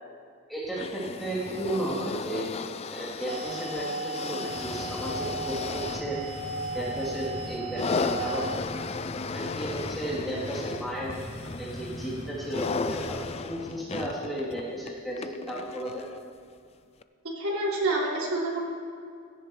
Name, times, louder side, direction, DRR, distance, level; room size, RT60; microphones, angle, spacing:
voice 1, 0.5-2.5 2.9-6.2 6.7-8.5 9.3-11.2 11.6-16.0, right 1 dB, ahead, -9 dB, 3.0 m, -34 dB
sound 1, 0.7-16.2 17.0-17.1, left 4 dB, 30° left, 0.3 m, -35 dB
sound 2, 3.3-8.6, right 2 dB, 30° right, 0.5 m, -36 dB
sound 3, 4.4-13.2, equal, 75° left, 4.1 m, -41 dB
voice 2, 17.2-18.6, right 2 dB, 75° right, -4 dB, 2.9 m, -28 dB
16.5 x 15.0 x 3.2 m, 2.3 s
head